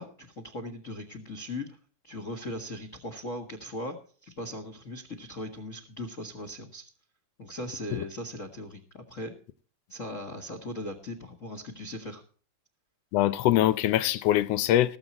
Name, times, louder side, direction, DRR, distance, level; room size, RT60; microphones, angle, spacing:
voice 1, 0.0-1.8 2.0-3.9 4.2-6.9 7.4-9.3 9.9-12.2, left 1 dB, 35° left, 1.4 m, -39 dB
voice 2, 13.1-15.0, left 13 dB, 80° left, 1.4 m, -23 dB
19.5 x 7.9 x 4.3 m
omnidirectional pair, 3.6 m